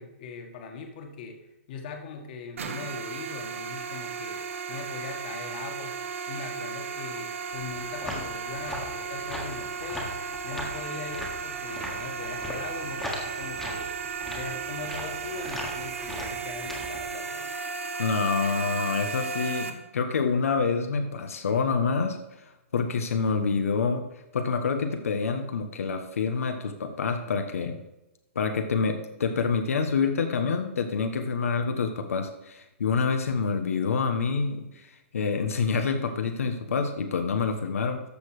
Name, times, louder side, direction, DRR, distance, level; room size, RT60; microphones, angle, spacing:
voice 1, 0.0-1.4 1.7-4.4 4.7-6.0 6.3-13.9 14.3-17.5, left 5 dB, 40° left, 3 dB, 1.7 m, -40 dB
sound 1, 2.6-19.7, right 5 dB, 70° right, 1.4 m, -35 dB
sound 2, 7.5-17.1, left 1 dB, 5° left, 1.5 m, -40 dB
voice 2, 18.0-22.2 22.7-24.0 24.3-27.8 28.3-38.0, left 5 dB, 90° left, 6 dB, 1.3 m, -27 dB
14.0 x 4.9 x 4.9 m, 0.97 s
hypercardioid pair, 160°, 7 cm